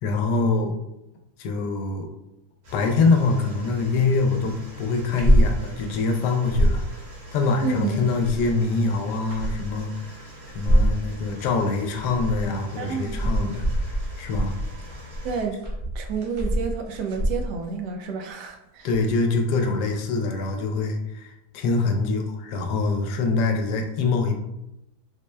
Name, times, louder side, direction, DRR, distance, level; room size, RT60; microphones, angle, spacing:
voice 1, 0.0-0.8 1.4-2.1 2.7-7.1 7.3-14.5 18.8-24.3, left 3 dB, 85° left, 4 dB, 1.2 m, -24 dB
sound 1, 2.6-15.4, left 1 dB, 70° right, 1.6 m, -44 dB
sound 2, 4.9-5.5 5.9-6.0 6.3-6.8 8.0-8.6 9.1-9.8 10.5-11.0 11.8-12.5 12.8-17.6 18.9-19.2 19.9-20.0, right 1 dB, 40° right, 0.7 m, -24 dB
voice 2, 7.6-8.1 12.8-13.3 15.2-15.6 15.9-18.9, right 5 dB, 90° right, 4 dB, 1.2 m, -30 dB
4.1 x 2.2 x 3.2 m, 0.89 s
omnidirectional pair, 1.8 m